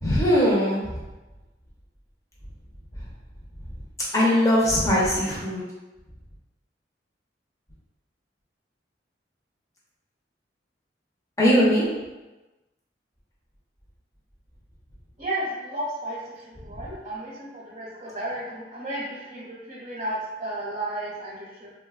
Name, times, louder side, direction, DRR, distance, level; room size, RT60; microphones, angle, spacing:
voice 1, 0.0-1.0 4.1-5.6 11.4-11.8, equal, 20° left, -6 dB, 0.7 m, -20 dB
voice 2, 15.2-21.7, right 1 dB, 35° right, -8 dB, 0.7 m, -33 dB
3.1 x 2.2 x 2.3 m, 1.1 s
head